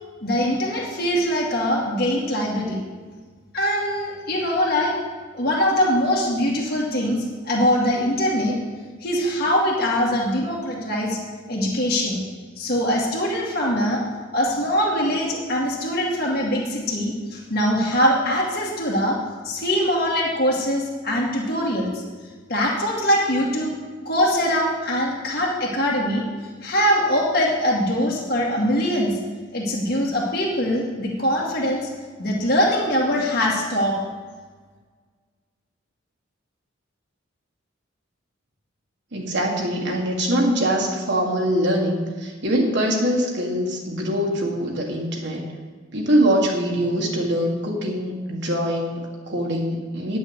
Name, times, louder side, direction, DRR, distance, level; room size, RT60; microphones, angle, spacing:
voice 1, 0.2-2.8 3.5-4.9 5.3-8.6 9.0-11.2 11.5-12.2 12.6-14.0 14.3-19.2 19.4-22.0 22.5-23.7 24.1-26.2 26.6-29.1 29.5-31.9 32.2-33.9, equal, 50° left, -4 dB, 2.2 m, -22 dB
voice 2, 39.1-45.5 45.9-50.2, equal, 55° right, -1 dB, 1.7 m, -23 dB
10.0 x 6.3 x 8.2 m, 1.5 s
head